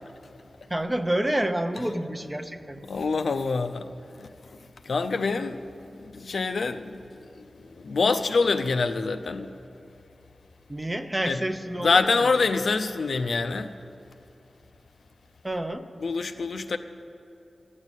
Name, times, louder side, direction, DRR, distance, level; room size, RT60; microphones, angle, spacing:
voice 1, 0.7-2.8 10.7-12.3 15.4-15.9, right 1 dB, 15° right, 7 dB, 0.6 m, -29 dB
voice 2, 2.9-4.3 4.8-5.6 6.0-7.3 7.6-9.5 11.3-11.4 11.8-13.7 16.0-16.8, left 4 dB, 75° left, 8 dB, 0.5 m, -26 dB
12.0 x 7.4 x 8.1 m, 2.7 s
wide cardioid pair, 95°, 0 cm